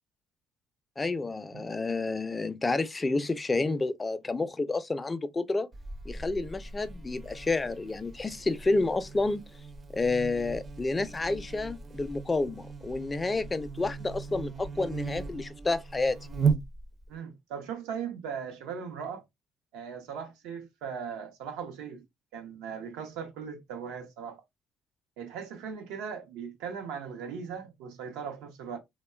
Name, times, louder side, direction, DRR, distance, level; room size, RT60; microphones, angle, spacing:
voice 1, 1.0-5.7 6.1-9.5 9.9-16.2, left 3 dB, 20° left, 0.3 m, -30 dB
Buzz, 5.7-17.1, right 5 dB, 35° right, 0.5 m, -36 dB
voice 2, 17.1-19.2 19.7-22.0 22.3-24.4 25.2-28.8, right 7 dB, 90° right, 0.7 m, -38 dB
2.9 x 2.2 x 2.2 m
cardioid pair, 90°, 0 cm